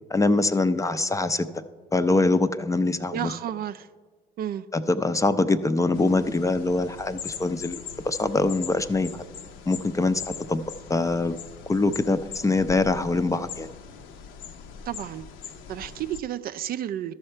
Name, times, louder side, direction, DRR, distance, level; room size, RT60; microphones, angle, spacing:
voice 1, 0.1-1.5 1.9-3.3 4.7-9.2 9.7-10.6 10.9-11.4 11.7-13.7, left 3 dB, 15° left, 11 dB, 0.4 m, -24 dB
voice 2, 3.1-3.9 4.4-4.7 14.9-15.2 15.7-17.1, right 11 dB, 50° right, 12 dB, 0.4 m, -31 dB
sound 1, 5.9-16.2, left 7 dB, 70° left, 0.7 m, -41 dB
13.0 x 5.6 x 4.4 m, 1.4 s
supercardioid pair, 70°, 20 cm